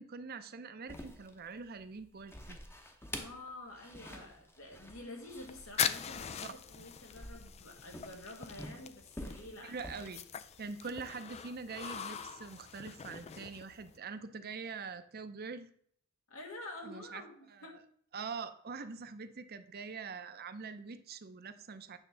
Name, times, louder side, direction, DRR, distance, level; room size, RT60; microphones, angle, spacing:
voice 1, 0.0-2.6 6.4-6.9 9.6-10.2 10.6-15.7 16.8-17.2 17.5-17.6 18.1-22.0, right 4 dB, 50° right, 10 dB, 0.7 m, -44 dB
sound 1, 0.9-11.1, left 1 dB, 10° left, 0.8 m, -49 dB
voice 2, 3.2-9.8 16.3-17.8, left 2 dB, 80° left, 1 dB, 2.0 m, -49 dB
sound 2, 5.3-14.0, left 8 dB, 30° left, 0.3 m, -41 dB
9.0 x 3.7 x 6.7 m, 0.62 s
head